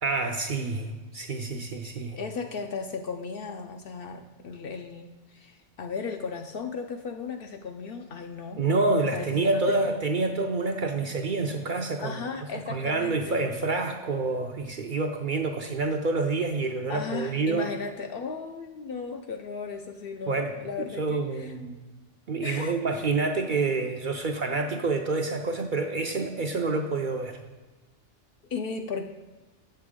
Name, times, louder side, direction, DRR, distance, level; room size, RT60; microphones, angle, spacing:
voice 1, 0.0-2.2 8.6-12.2 12.7-17.7 20.3-20.5 20.8-21.8 22.3-27.4, right 3 dB, 55° right, 3 dB, 0.6 m, -28 dB
voice 2, 2.2-8.6 9.1-9.9 12.0-13.4 16.9-21.5 22.4-22.8 28.5-29.0, left 5 dB, 60° left, 5 dB, 0.6 m, -36 dB
7.8 x 6.7 x 3.6 m, 1.2 s
omnidirectional pair, 1.2 m